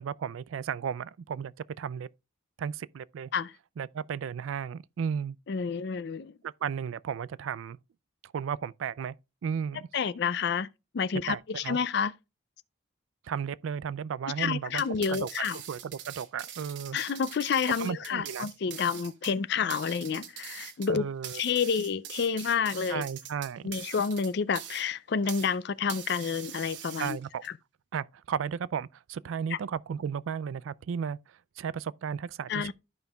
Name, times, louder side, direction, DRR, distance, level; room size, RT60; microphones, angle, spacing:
voice 1, 0.0-2.1 2.6-3.3 3.8-5.4 6.4-7.8 8.2-9.1 9.4-9.9 11.3-11.8 13.2-14.8 15.1-17.0 17.8-18.5 20.9-21.4 22.9-23.6 27.0-27.4 27.9-32.7, right 7 dB, 80° right, 0.3 m, -34 dB
voice 2, 5.5-6.3 9.9-10.7 10.9-12.1 14.4-15.6 16.9-21.1 21.3-23.1 23.6-27.2 27.4-27.5 29.5-29.6 32.5-32.7, left 6 dB, 55° left, 0.4 m, -29 dB
sound 1, 14.7-25.5 25.9-27.5, right 9 dB, 65° right, 1.1 m, -43 dB
13.5 x 5.3 x 2.3 m
head